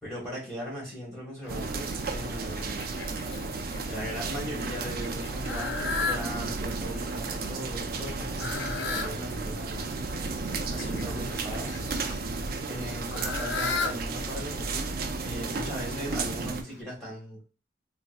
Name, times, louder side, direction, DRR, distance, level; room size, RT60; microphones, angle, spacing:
voice 1, 0.0-2.9 3.5-9.8 10.7-11.7 12.7-14.9 15.2-17.4, equal, 5° left, -6 dB, 1.6 m, -38 dB
Fowl, 1.4-16.8, left 4 dB, 75° left, 0.5 m, -38 dB
sound 1, 1.5-16.6, right 3 dB, 55° right, 0.4 m, -33 dB
3.9 x 2.6 x 2.5 m, 0.33 s
head